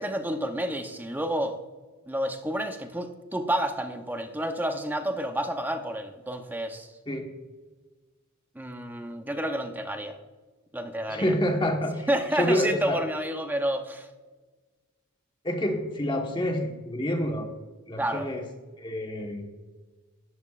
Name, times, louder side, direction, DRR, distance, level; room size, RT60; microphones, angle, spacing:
voice 1, 0.0-1.6 2.1-6.9 8.6-10.2 10.7-11.3 12.1-14.1 18.0-18.3, right 1 dB, 10° right, 6 dB, 0.7 m, -30 dB
voice 2, 11.1-12.1 12.3-13.0 15.4-17.5 17.9-18.4 18.8-19.5, left 1 dB, 20° left, 2 dB, 1.3 m, -27 dB
14.0 x 10.5 x 2.4 m, 1.3 s
head